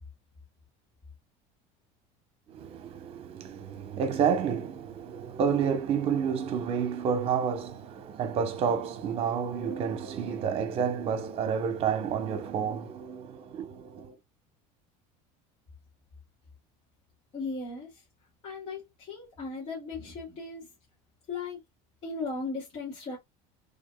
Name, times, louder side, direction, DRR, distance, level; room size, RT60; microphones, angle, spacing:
voice 1, 2.5-14.1, right 7 dB, 35° right, 1.1 m, -30 dB
voice 2, 17.3-18.0 18.4-20.7 21.3-21.6 22.0-23.2, left 3 dB, 35° left, 2.4 m, -37 dB
6.1 x 3.6 x 2.3 m
cardioid pair, 160°, 16 cm